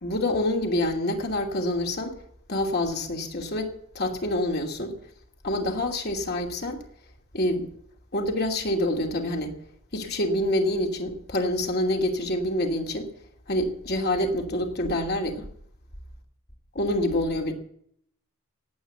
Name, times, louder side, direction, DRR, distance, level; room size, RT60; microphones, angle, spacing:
voice 1, 0.0-2.1 2.5-4.9 5.4-6.8 7.3-7.7 8.1-9.5 9.9-13.1 13.5-15.5 16.7-17.5, left 1 dB, 45° left, 2 dB, 2.7 m, -26 dB
17.5 x 8.3 x 8.1 m, 0.68 s
head